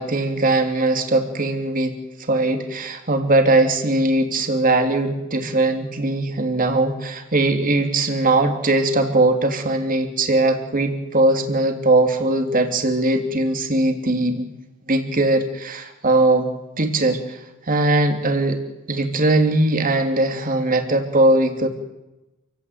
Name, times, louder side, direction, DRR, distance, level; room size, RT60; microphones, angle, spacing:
voice 1, 0.0-2.0 2.3-14.5 14.9-16.5 16.8-18.6 18.9-21.7, right 2 dB, 40° right, 5 dB, 3.1 m, -20 dB
28.5 x 16.5 x 9.5 m, 1.0 s
head